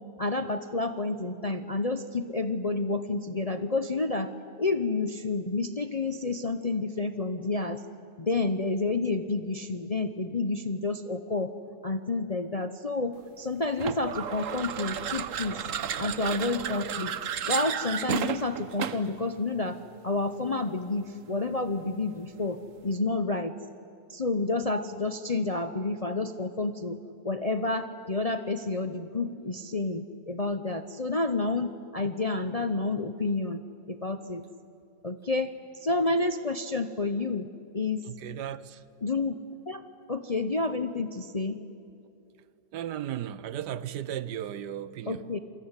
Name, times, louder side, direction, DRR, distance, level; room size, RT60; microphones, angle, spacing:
voice 1, 0.2-7.8 8.2-11.6 11.8-15.6 16.0-17.1 17.5-19.8 20.0-23.5 24.1-27.0 27.2-33.6 33.9-34.4 35.0-35.5 35.8-37.5 37.7-38.0 39.0-39.4 39.7-39.8 40.1-41.6 45.1-45.4, left 3 dB, 40° left, 0.5 m, -29 dB
sound 1, 13.8-19.2, right 8 dB, 55° right, 1.2 m, -33 dB
voice 2, 38.1-38.8 42.7-45.2, right 10 dB, 85° right, 1.4 m, -35 dB
27.5 x 22.0 x 9.7 m
omnidirectional pair, 1.8 m